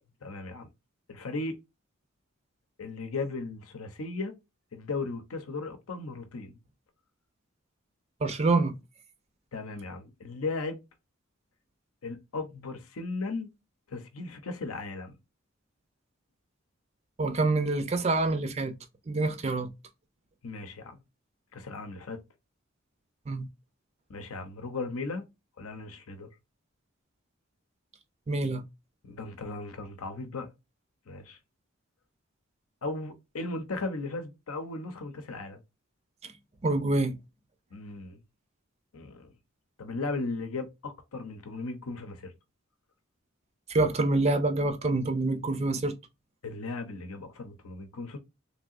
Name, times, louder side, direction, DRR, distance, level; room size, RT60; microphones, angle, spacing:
voice 1, 0.2-0.7 1.1-1.6 2.8-4.3 4.7-6.6 9.5-10.8 12.0-13.5 13.9-15.1 20.4-21.0 21.5-22.2 24.1-25.3 25.6-26.3 29.0-30.5 31.1-31.4 32.8-35.6 37.7-38.2 38.9-39.3 39.8-42.3 46.4-48.2, left 3 dB, 90° left, 0.7 m, -36 dB
voice 2, 8.2-8.7 17.2-18.7 19.1-19.7 23.3-23.5 28.3-28.6 36.2-36.3 36.6-37.2 43.7-45.9, right 2 dB, 30° right, 0.4 m, -26 dB
3.3 x 2.8 x 2.4 m
head